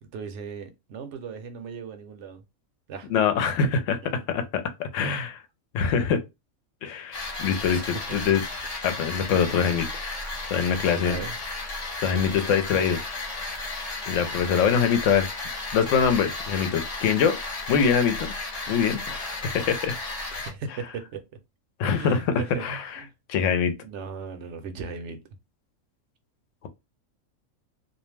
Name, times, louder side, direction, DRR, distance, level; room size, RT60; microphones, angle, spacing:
voice 1, 0.0-2.4 2.9-3.1 7.7-8.0 11.0-11.3 20.3-21.2 21.8-22.7 23.0-23.1 23.8-25.2, right 5 dB, 65° right, 0.8 m, -37 dB
voice 2, 3.1-5.4 5.7-6.2 6.8-8.4 8.8-9.9 10.5-11.2 12.0-13.0 14.1-15.3 15.7-17.4 17.7-18.3 18.7-20.0 21.8-23.0 23.3-23.8, left 6 dB, 70° left, 0.9 m, -24 dB
sound 1, 7.1-20.5, left 3 dB, 40° left, 0.5 m, -34 dB
2.4 x 2.1 x 3.2 m
omnidirectional pair, 1.5 m